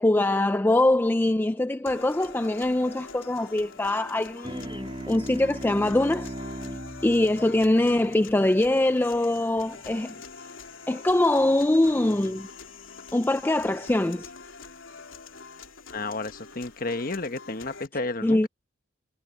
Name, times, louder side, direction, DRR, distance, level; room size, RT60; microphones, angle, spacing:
voice 1, 0.0-6.3 7.0-10.1 10.9-12.5 13.1-14.3 18.2-18.5, left 1 dB, 10° left, 0.3 m, -23 dB
sound 1, 1.9-17.9, left 4 dB, 90° left, 3.3 m, -45 dB
sound 2, 4.4-9.3, right 1 dB, 30° right, 3.2 m, -39 dB
voice 2, 15.9-18.5, left 2 dB, 45° left, 1.4 m, -32 dB
head